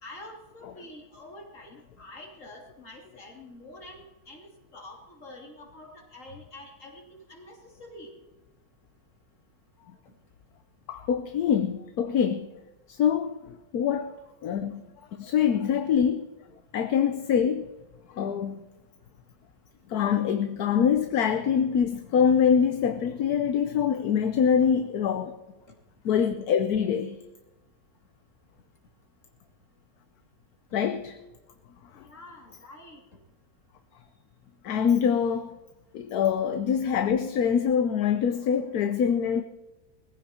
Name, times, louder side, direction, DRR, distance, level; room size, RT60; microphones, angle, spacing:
voice 1, 0.0-8.1 31.9-33.0, left 1 dB, 50° left, 3.2 m, -47 dB
voice 2, 10.9-12.5 12.9-13.4 13.7-14.1 14.4-14.8 15.1-16.3 16.7-17.7 18.1-18.6 19.9-25.4 26.0-27.2 30.7-31.1 32.0-32.1 34.6-35.6 35.9-39.4, left 7 dB, 70° left, 1.3 m, -24 dB
21.0 x 15.5 x 4.4 m
omnidirectional pair, 1.8 m